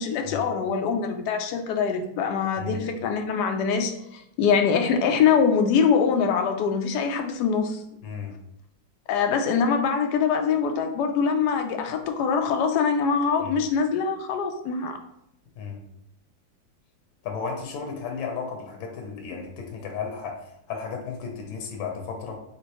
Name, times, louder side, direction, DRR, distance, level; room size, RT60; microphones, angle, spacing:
voice 1, 0.0-7.8 9.1-15.0, left 6 dB, 70° left, 5 dB, 1.0 m, -23 dB
voice 2, 8.0-8.3 13.4-13.6 15.6-15.8 17.2-22.4, left 5 dB, 90° left, 3 dB, 1.6 m, -34 dB
4.3 x 3.4 x 2.9 m, 0.77 s
omnidirectional pair, 2.1 m